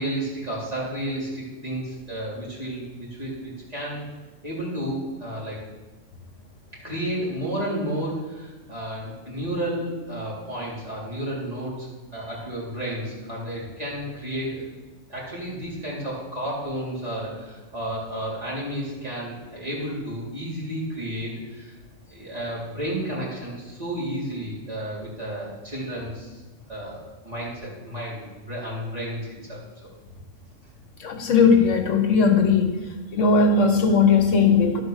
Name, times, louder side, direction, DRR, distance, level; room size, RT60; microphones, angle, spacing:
voice 1, 0.0-4.0 4.4-5.6 6.8-14.7 15.1-21.7 22.1-26.4 26.7-29.6, right 1 dB, 30° right, -7 dB, 3.8 m, -32 dB
voice 2, 31.0-32.8 33.1-34.8, left 5 dB, 75° left, 6 dB, 1.3 m, -18 dB
12.0 x 5.1 x 6.5 m, 1.2 s
omnidirectional pair, 1.3 m